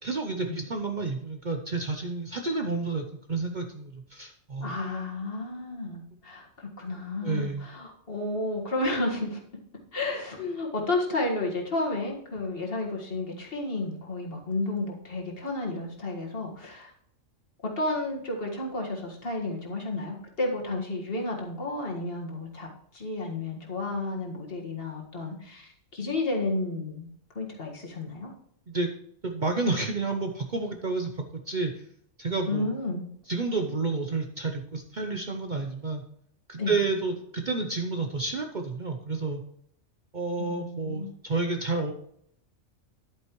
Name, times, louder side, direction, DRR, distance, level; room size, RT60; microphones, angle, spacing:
voice 1, 0.0-4.8 7.2-7.7 28.7-28.9 29.2-31.7 32.2-32.7 33.3-36.0 36.5-39.4 40.1-41.9, right 3 dB, 45° right, 4 dB, 0.7 m, -30 dB
voice 2, 4.6-9.4 9.9-16.9 17.8-27.1 27.4-28.3 32.5-33.1 36.6-36.8 40.4-41.1, left 2 dB, 45° left, -1 dB, 1.9 m, -32 dB
10.5 x 8.8 x 3.0 m, 0.68 s
omnidirectional pair, 1.3 m